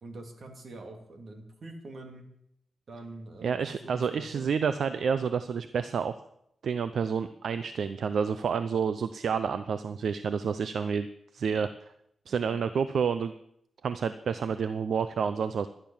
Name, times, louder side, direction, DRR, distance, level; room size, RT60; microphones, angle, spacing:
voice 1, 0.0-2.3 2.9-4.5 12.3-12.8, right 2 dB, 55° right, 4 dB, 3.0 m, -45 dB
voice 2, 3.4-6.1 6.6-11.1 11.3-11.7 12.3-13.3 13.8-15.7, right 6 dB, 75° right, 11 dB, 0.7 m, -29 dB
15.0 x 11.5 x 7.3 m, 0.75 s
wide cardioid pair, 125°, 0 cm